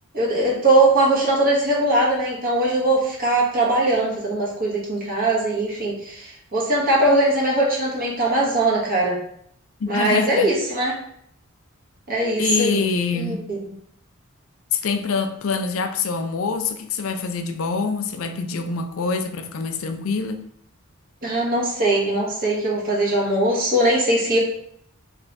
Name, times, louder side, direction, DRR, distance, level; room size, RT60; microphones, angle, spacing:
voice 1, 0.1-9.2 9.9-10.9 12.1-12.9 13.1-13.6 21.2-24.4, right 1 dB, 45° right, 1.4 m, -20 dB
voice 2, 9.8-10.5 12.4-13.5 14.7-20.4, left 4 dB, 70° left, 0.5 m, -25 dB
3.4 x 3.3 x 4.0 m
head